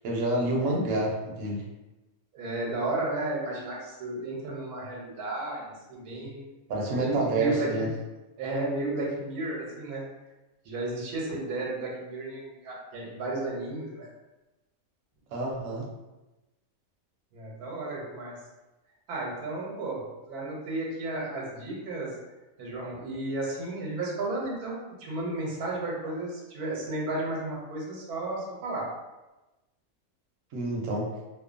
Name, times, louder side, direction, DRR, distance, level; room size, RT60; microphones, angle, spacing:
voice 1, 0.0-1.6 6.1-6.3 6.7-7.9 15.3-15.9 30.5-31.1, right 2 dB, 70° right, -2 dB, 1.0 m, -28 dB
voice 2, 2.3-6.4 7.0-7.9 8.4-10.0 10.6-14.1 17.3-18.4 19.1-22.1 22.6-28.9, right 2 dB, 90° right, -2 dB, 1.2 m, -33 dB
2.9 x 2.1 x 2.4 m, 1.1 s
omnidirectional pair, 1.6 m